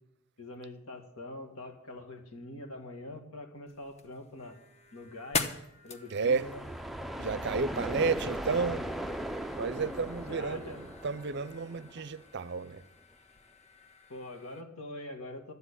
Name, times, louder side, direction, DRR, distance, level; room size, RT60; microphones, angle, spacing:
voice 1, 0.4-4.6 4.9-5.5 5.8-6.6 10.3-10.8 12.0-12.1 14.1-15.5, left 1 dB, 80° left, 2.0 m, -44 dB
sound 1, 3.7-14.6, left 4 dB, 30° left, 0.9 m, -43 dB
voice 2, 6.1-6.4 7.2-8.8 9.5-12.8, right 5 dB, 55° right, 0.5 m, -32 dB
sound 2, 6.3-12.0, equal, ahead, 0.4 m, -38 dB
12.5 x 7.9 x 8.3 m
head